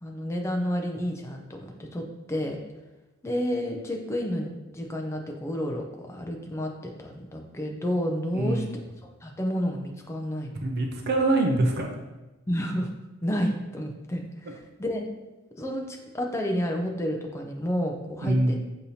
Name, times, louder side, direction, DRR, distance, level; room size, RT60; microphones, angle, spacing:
voice 1, 0.0-2.0 2.3-2.6 3.2-8.6 9.2-10.6 12.5-12.9 13.2-15.0 15.6-18.6, equal, 10° left, 2 dB, 0.4 m, -30 dB
voice 2, 8.3-8.7 10.6-11.9 18.2-18.6, right 2 dB, 45° right, 2 dB, 0.4 m, -24 dB
6.5 x 2.8 x 2.7 m, 1.1 s
head